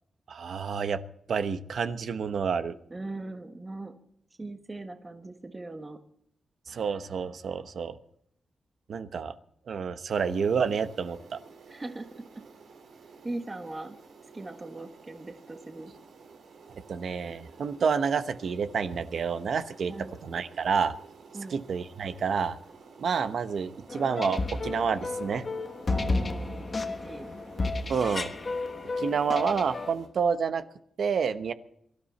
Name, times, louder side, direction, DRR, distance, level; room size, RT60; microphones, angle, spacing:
voice 1, 0.3-1.0 1.3-2.8 6.7-8.0 8.9-9.3 9.7-11.4 16.9-19.9 20.2-20.9 21.5-22.6 23.0-25.4 27.9-28.3 29.0-30.6 31.0-31.5, right 6 dB, 65° right, 11 dB, 1.0 m, -29 dB
voice 2, 2.9-3.9 4.4-6.0 11.7-12.4 13.2-14.0 14.3-15.9 19.9-20.1 21.3-21.6 25.9-27.3, right 2 dB, 20° right, 5 dB, 1.3 m, -40 dB
sound 1, 10.1-30.1, right 4 dB, 90° right, 3.4 m, -52 dB
sound 2, 23.9-29.9, left 3 dB, 35° left, 1.3 m, -32 dB
23.5 x 13.0 x 4.2 m, 0.69 s
wide cardioid pair, 140°, 0 cm